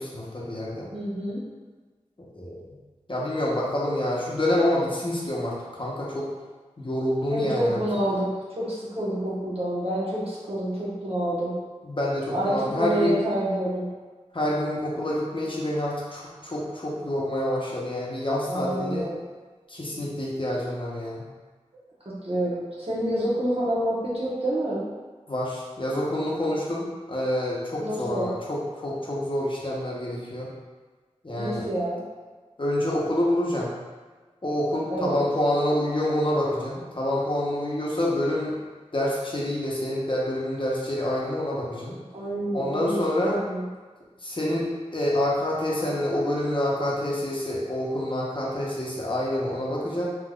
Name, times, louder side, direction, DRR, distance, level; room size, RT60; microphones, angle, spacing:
voice 1, 0.0-0.9 2.2-2.6 3.1-6.3 6.8-7.8 11.8-13.1 14.3-19.0 19.7-21.2 25.3-30.5 31.2-31.7 32.6-33.7 34.4-38.5 38.9-42.0 42.5-43.4 44.2-50.1, left 1 dB, 45° left, -5 dB, 0.8 m, -27 dB
voice 2, 0.9-1.4 7.3-11.5 12.3-13.9 18.5-19.2 22.2-24.8 27.8-28.3 31.4-32.0 34.9-35.2 42.1-43.7, right 1 dB, 50° right, -7 dB, 1.1 m, -28 dB
3.6 x 3.0 x 2.3 m, 1.4 s
wide cardioid pair, 45°, 12 cm